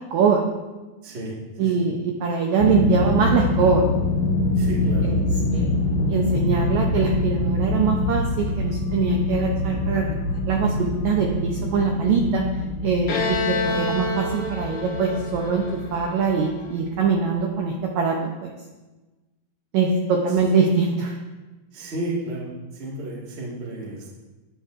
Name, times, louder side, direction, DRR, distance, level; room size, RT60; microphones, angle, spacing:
voice 1, 0.1-0.4 1.6-3.8 5.0-5.2 5.5-12.4 12.8-18.5 19.7-21.1, right 5 dB, 90° right, 1 dB, 1.6 m, -23 dB
voice 2, 1.0-1.3 1.6-1.7 4.5-5.1 21.7-22.5 22.7-24.3, right 1 dB, 45° right, -4 dB, 0.8 m, -32 dB
sound 1, 2.6-17.4, left 2 dB, 90° left, 1.5 m, -25 dB
Bowed string instrument, 13.1-16.6, left 3 dB, 70° left, 1.4 m, -28 dB
12.5 x 9.1 x 2.5 m, 1.2 s
omnidirectional pair, 4.2 m